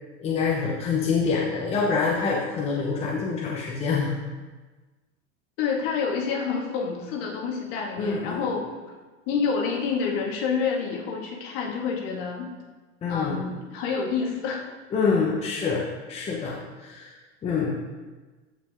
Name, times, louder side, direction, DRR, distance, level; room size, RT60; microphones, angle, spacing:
voice 1, 0.2-4.1 8.0-8.6 13.0-13.4 14.9-17.1 17.4-17.8, left 5 dB, 15° left, -3 dB, 0.9 m, -26 dB
voice 2, 5.6-8.7 9.3-12.5 13.1-14.6, left 5 dB, 50° left, -1 dB, 2.1 m, -28 dB
14.0 x 5.5 x 3.7 m, 1.3 s
supercardioid pair, 160°, 36 cm